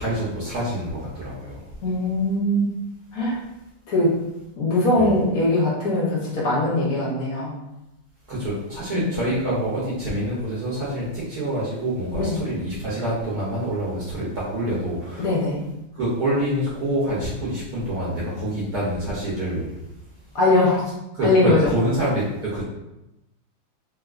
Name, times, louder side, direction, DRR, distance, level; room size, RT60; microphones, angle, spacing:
voice 1, 0.0-1.6 5.0-5.1 8.3-15.3 15.9-19.8 21.1-22.6, right 1 dB, 60° right, -8 dB, 1.1 m, -26 dB
voice 2, 1.8-2.6 3.1-3.4 3.9-4.2 4.6-7.5 8.9-9.1 12.2-12.4 15.2-15.6 20.3-20.8 21.2-21.7, left 2 dB, 55° left, -5 dB, 1.1 m, -21 dB
3.5 x 2.7 x 2.4 m, 0.94 s
omnidirectional pair, 2.2 m